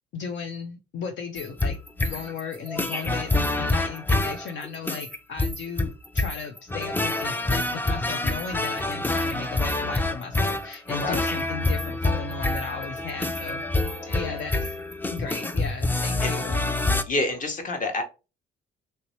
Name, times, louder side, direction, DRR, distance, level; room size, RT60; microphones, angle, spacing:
voice 1, 0.1-1.8 2.0-14.7 15.1-16.6, left 5 dB, 70° left, 5 dB, 0.5 m, -36 dB
sound 1, 1.4-17.0, left 2 dB, 10° left, 0.3 m, -27 dB
voice 2, 14.1-14.4 16.2-16.4 17.1-18.0, left 2 dB, 40° left, 5 dB, 1.0 m, -29 dB
3.1 x 2.8 x 2.9 m, 0.30 s
cardioid pair, 90°, 20 cm